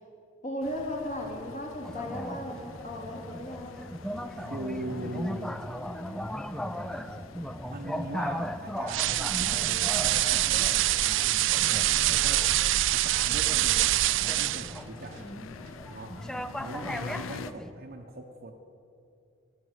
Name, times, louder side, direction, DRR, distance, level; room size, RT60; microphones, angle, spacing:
voice 1, 0.4-3.8, left 1 dB, 40° left, 0 dB, 2.7 m, -36 dB
sound 1, 0.6-17.5, left 4 dB, 90° left, 0.6 m, -46 dB
sound 2, 1.8-17.7, equal, 5° left, 0.4 m, -38 dB
voice 2, 4.0-5.6 7.7-11.5 12.0-12.5 12.9-15.2 15.9-16.2 16.6-18.5, right 2 dB, 50° right, 1 dB, 0.9 m, -41 dB
sound 3, 8.9-14.8, right 14 dB, 65° right, 0.4 m, -25 dB
17.0 x 8.4 x 9.1 m, 2.6 s
head